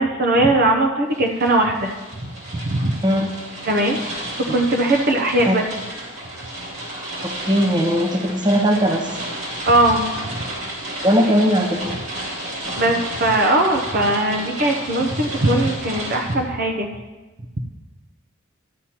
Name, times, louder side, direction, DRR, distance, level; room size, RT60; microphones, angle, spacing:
voice 1, 0.0-1.9 2.6-3.0 3.7-4.0 4.4-5.7 9.6-10.1 12.8-16.9, right 1 dB, 45° right, 2 dB, 0.7 m, -19 dB
sound 1, 1.1-16.4, right 1 dB, 60° right, 2.7 m, -32 dB
voice 2, 3.0-3.3 4.5-4.6 5.5-5.6 6.9-9.1 11.0-12.0, equal, 20° right, 3 dB, 0.9 m, -19 dB
12.5 x 9.9 x 2.9 m, 1.2 s
head